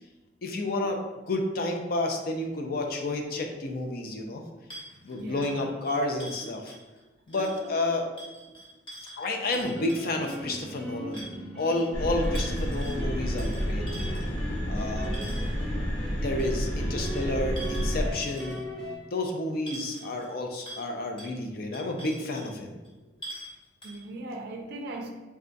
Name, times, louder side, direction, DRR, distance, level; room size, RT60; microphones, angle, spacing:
voice 1, 0.4-1.0 1.3-4.4 5.0-6.8 7.3-8.0 9.2-11.2 11.5-14.3 14.7-15.1 16.2-18.6 19.1-22.8, left 2 dB, 55° left, 0.5 m, -30 dB
sound 1, 4.7-7.0 7.3-7.7 8.2-10.7 11.1-11.9 12.2-13.0 13.4-15.6 16.4-18.8 19.1-19.2 19.7-20.3 20.6-20.9 21.2-21.3 21.7-22.5 22.8-22.9 23.2-23.5 23.8-24.0, right 1 dB, 30° left, 0.9 m, -44 dB
voice 2, 5.1-5.7 7.3-8.0 23.8-25.1, right 2 dB, 60° right, 0.4 m, -39 dB
sound 2, 9.5-19.0, right 1 dB, 5° left, 0.7 m, -39 dB
sound 3, 11.9-18.1, equal, 75° left, 0.9 m, -30 dB
3.5 x 2.2 x 3.9 m
head